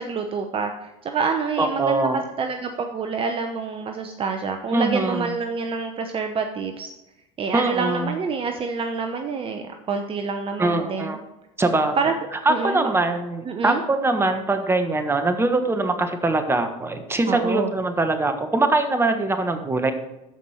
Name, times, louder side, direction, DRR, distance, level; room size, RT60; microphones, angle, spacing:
voice 1, 0.0-6.9 7.4-11.2 12.0-12.1 12.5-12.9 13.4-13.8 17.3-17.7, right 5 dB, 35° right, 5 dB, 0.9 m, -27 dB
voice 2, 1.6-2.2 4.7-5.3 7.5-8.1 10.6-11.2 11.6-12.0 12.4-19.9, right 2 dB, 15° right, 7 dB, 1.4 m, -22 dB
13.5 x 5.3 x 4.4 m, 0.93 s
hypercardioid pair, 90°, 16 cm